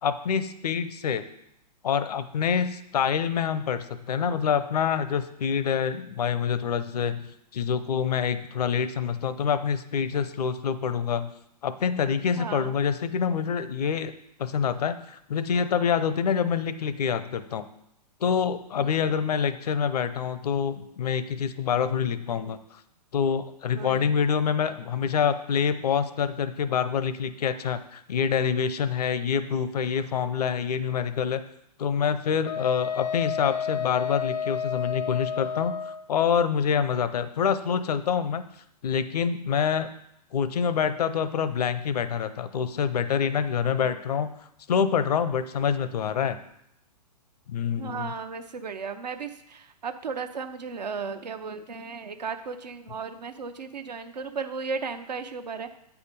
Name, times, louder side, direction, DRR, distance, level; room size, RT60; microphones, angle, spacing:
voice 1, 0.0-1.2 1.8-11.3 11.6-14.1 14.4-17.6 18.2-22.8 23.1-31.4 31.8-38.4 38.8-39.9 40.3-44.3 44.7-46.4 47.5-48.1, left 7 dB, 65° left, 12 dB, 0.6 m, -26 dB
voice 2, 12.4-12.8 18.8-19.1 23.7-24.1 43.8-44.0 47.8-55.7, right 5 dB, 80° right, 7 dB, 0.8 m, -35 dB
Wind instrument woodwind instrument, 32.5-36.0, left 7 dB, 15° left, 0.3 m, -30 dB
8.2 x 4.9 x 5.3 m, 0.78 s
hypercardioid pair, 120°, 21 cm